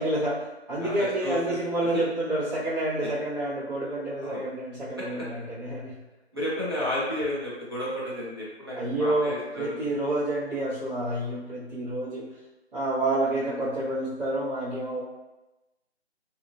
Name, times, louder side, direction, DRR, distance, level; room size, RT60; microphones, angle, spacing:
voice 1, 0.0-6.0 8.7-12.3 12.7-15.0, right 1 dB, 55° right, -13 dB, 1.3 m, -29 dB
voice 2, 0.8-2.0 4.2-4.4 5.0-5.1 6.3-9.9, left 1 dB, 25° right, -9 dB, 0.5 m, -32 dB
2.8 x 2.4 x 2.3 m, 1.0 s
figure-of-eight pair, 160°, 34 cm